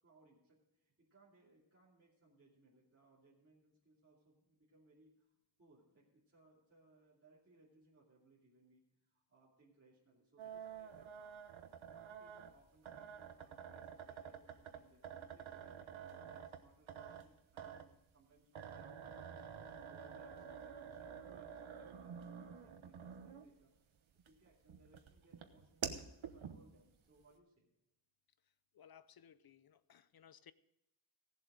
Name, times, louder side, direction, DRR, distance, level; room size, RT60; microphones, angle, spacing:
voice 1, 0.0-5.3 5.6-11.4 11.9-14.4 14.7-19.4 19.9-23.7 24.2-25.9 26.3-27.7, right 2 dB, 30° right, -7 dB, 2.8 m, -69 dB
sound 1, 10.4-23.7 24.2-26.9, right 7 dB, 85° right, 1.1 m, -49 dB
voice 2, 28.7-30.5, left 8 dB, 50° left, 16 dB, 0.6 m, -62 dB
16.5 x 7.7 x 4.9 m, 0.87 s
wide cardioid pair, 150°, 47 cm